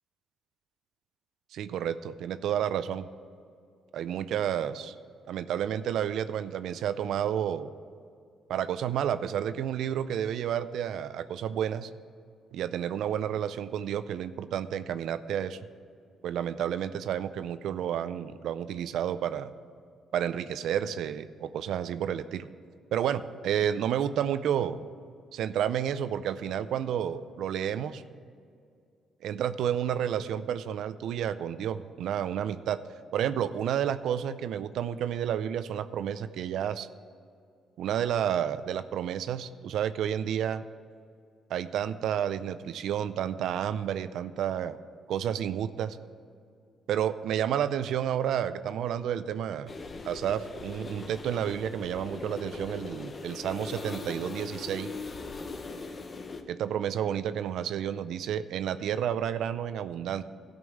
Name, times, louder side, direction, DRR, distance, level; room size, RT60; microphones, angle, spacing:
voice 1, 1.5-3.1 3.9-5.0 5.3-7.7 8.5-11.9 12.5-15.6 16.2-19.5 20.1-22.5 22.9-24.8 25.3-28.0 29.2-32.8 33.1-36.9 37.8-40.6 41.5-44.8 45.1-46.0 46.9-49.7 50.0-54.9 56.5-60.2, right 9 dB, 80° right, 13 dB, 0.4 m, -30 dB
sound 1, 49.7-56.4, left 3 dB, 40° left, 0.8 m, -40 dB
13.0 x 5.3 x 7.7 m, 2.3 s
cardioid pair, 90°, 0 cm